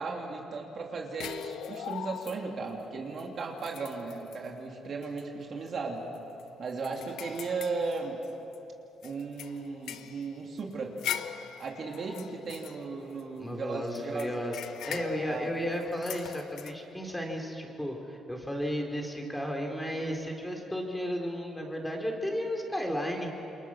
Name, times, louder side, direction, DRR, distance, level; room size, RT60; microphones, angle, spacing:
voice 1, 0.0-6.0 6.6-8.2 9.0-11.0 11.6-14.3 15.2-15.5, right 4 dB, 55° right, 0 dB, 3.0 m, -36 dB
sound 1, 1.2-2.7 3.2-3.3 3.6-4.5 5.0-5.2 5.6-5.7 6.1-8.6 9.0-13.5 13.9-16.7, left 10 dB, 80° left, 0.8 m, -41 dB
voice 2, 13.4-14.6 14.9-23.3, equal, 5° left, 2 dB, 4.0 m, -33 dB
28.0 x 23.0 x 6.4 m, 2.9 s
cardioid pair, 90°, 0 cm